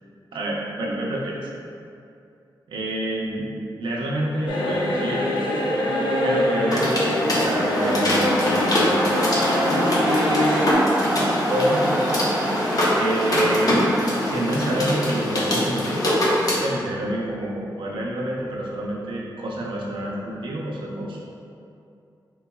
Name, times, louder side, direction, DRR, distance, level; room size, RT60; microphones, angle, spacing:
voice 1, 0.3-1.5 2.7-3.5 3.8-5.3 6.2-10.3 11.5-11.9 13.0-13.8 14.3-16.0 16.6-21.2, right 1 dB, 90° right, -3 dB, 0.7 m, -28 dB
sound 1, 4.4-14.3, right 1 dB, 15° right, 0.5 m, -29 dB
sound 2, 4.5-10.7, left 1 dB, 90° left, 0.5 m, -24 dB
sound 3, 6.7-16.6, left 1 dB, 50° left, 0.9 m, -23 dB
4.6 x 3.9 x 2.3 m, 2.6 s
wide cardioid pair, 95°, 8 cm